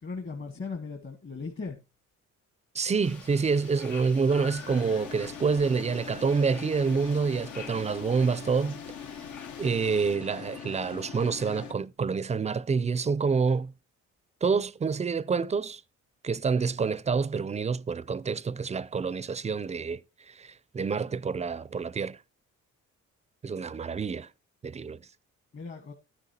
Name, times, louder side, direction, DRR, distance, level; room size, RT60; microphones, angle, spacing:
voice 1, 0.0-1.8 25.5-25.9, left 4 dB, 40° left, 1.5 m, -37 dB
voice 2, 2.7-8.8 9.6-13.7 14.4-15.8 16.2-20.0 20.3-22.2 23.4-24.3 24.6-25.0, right 5 dB, 20° right, 0.4 m, -27 dB
sound 1, 3.0-10.2, left 5 dB, 90° left, 2.0 m, -49 dB
sound 2, 4.3-11.7, left 7 dB, 70° left, 1.0 m, -42 dB
12.0 x 9.9 x 2.8 m
cardioid pair, 90°, 30 cm